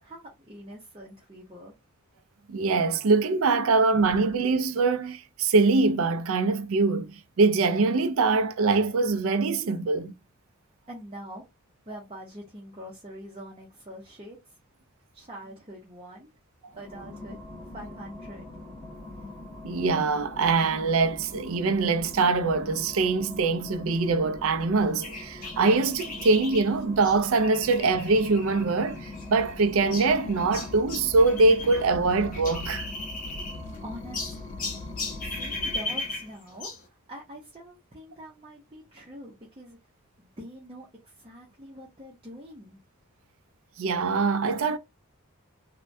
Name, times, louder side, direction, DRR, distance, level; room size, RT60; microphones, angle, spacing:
voice 1, 0.0-1.7 10.9-11.5 11.9-14.6 15.1-16.3 16.7-17.4 17.6-18.6 33.4-33.5 33.8-34.7 35.2-39.8 40.2-42.8, equal, 25° right, 0.7 m, -44 dB
voice 2, 2.5-10.1 19.6-32.9 43.8-44.8, right 3 dB, 65° right, 0.4 m, -23 dB
sound 1, 16.7-36.4, left 2 dB, 15° left, 1.3 m, -43 dB
sound 2, 25.0-31.8 32.1-33.8 34.1-36.9, left 3 dB, 40° left, 0.8 m, -37 dB
sound 3, 27.8-35.7, left 3 dB, 55° left, 0.3 m, -42 dB
3.2 x 2.2 x 2.6 m
head